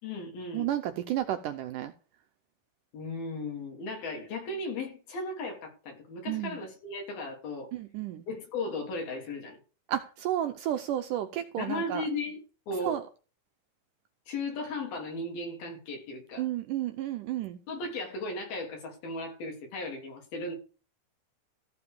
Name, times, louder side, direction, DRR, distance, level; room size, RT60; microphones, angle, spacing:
voice 1, 0.0-0.7 2.9-7.7 8.3-9.6 11.6-12.4 12.7-13.0 14.3-16.4 17.7-20.6, left 2 dB, 70° left, 5.4 m, -36 dB
voice 2, 0.5-1.9 6.3-6.6 7.7-8.2 9.9-12.0 12.8-13.0 16.4-17.6, right 12 dB, 75° right, 2.0 m, -32 dB
14.5 x 5.0 x 6.8 m
omnidirectional pair, 4.4 m